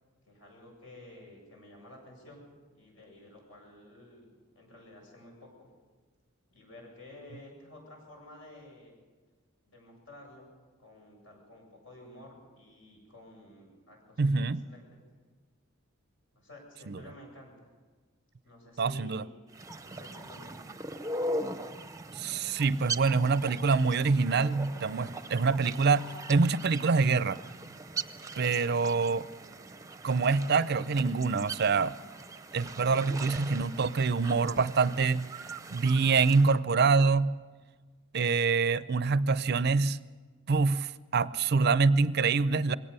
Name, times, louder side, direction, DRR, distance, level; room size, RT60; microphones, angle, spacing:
voice 1, 0.2-2.5 2.7-5.7 6.5-8.9 9.7-10.5 10.8-15.0 16.3-17.7 18.4-19.5 19.8-20.7, left 1 dB, 70° left, 1 dB, 8.0 m, -52 dB
voice 2, 14.2-14.6 16.9-17.0 18.8-19.2 22.2-27.4 28.4-29.3 30.0-31.9 32.5-35.3 35.7-37.3 38.1-40.0 40.5-42.7, right 4 dB, 50° right, 16 dB, 0.5 m, -25 dB
sound 1, 19.5-36.6, right 2 dB, 15° right, 0.7 m, -40 dB
21.5 x 17.5 x 6.8 m, 1.4 s
head